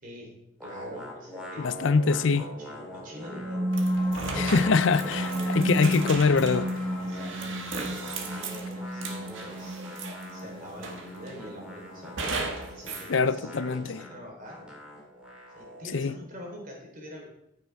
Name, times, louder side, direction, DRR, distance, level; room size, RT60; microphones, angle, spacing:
voice 1, 0.0-0.3 0.6-1.7 2.4-3.7 4.3-4.6 5.0-5.5 6.9-7.9 8.2-9.8 10.3-12.4 12.7-14.6 15.6-17.3, equal, 45° right, 3.7 m, -45 dB
sound 1, 0.6-3.9 4.1-7.5 7.9-16.0, equal, 5° right, 2.8 m, -43 dB
voice 2, 1.6-2.4 4.3-6.7 13.1-14.0 15.9-16.1, left 4 dB, 65° left, 0.5 m, -24 dB
sound 2, 3.1-14.1, equal, 20° left, 3.8 m, -32 dB
sound 3, 3.7-10.4 10.8-11.4 12.2-13.1, right 3 dB, 70° right, 1.6 m, -37 dB
14.0 x 6.6 x 4.7 m
head